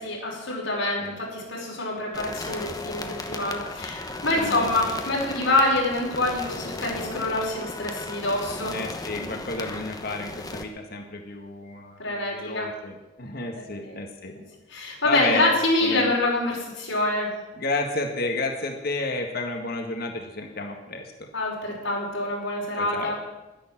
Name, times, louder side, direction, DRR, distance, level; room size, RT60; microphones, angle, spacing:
voice 1, 0.0-8.8 12.0-12.7 13.5-13.9 14.7-17.3 21.3-23.1, left 2 dB, 80° left, -3 dB, 5.4 m, -26 dB
sound 1, 2.1-10.6, left 2 dB, 20° left, 1.1 m, -36 dB
voice 2, 4.3-4.7 8.7-14.3 15.0-15.5 15.8-16.1 17.6-21.1 22.8-23.1, left 2 dB, 50° left, 3 dB, 1.7 m, -31 dB
11.5 x 10.5 x 7.5 m, 1.0 s
head